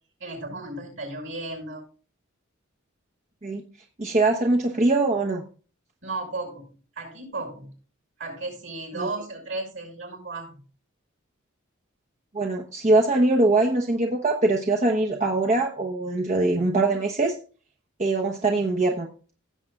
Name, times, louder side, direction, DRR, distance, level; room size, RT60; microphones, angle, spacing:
voice 1, 0.2-1.9 6.0-6.7 7.0-7.7 8.2-10.6, right 2 dB, 65° right, 0 dB, 5.6 m, -34 dB
voice 2, 4.0-5.4 8.9-9.1 12.3-17.4 18.0-19.1, right 2 dB, 35° right, 1 dB, 1.0 m, -22 dB
16.5 x 7.7 x 2.4 m, 0.39 s
head